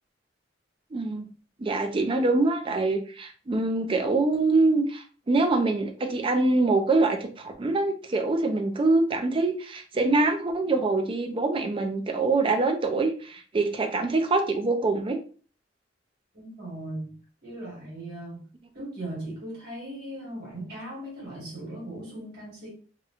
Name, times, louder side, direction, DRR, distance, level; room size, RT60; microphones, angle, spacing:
voice 1, 0.9-1.3 1.6-15.2, right 3 dB, 30° right, 0.4 m, -24 dB
voice 2, 16.3-17.2 17.4-18.4 18.7-22.7, right 1 dB, 55° right, 1.4 m, -38 dB
2.9 x 2.1 x 2.4 m
head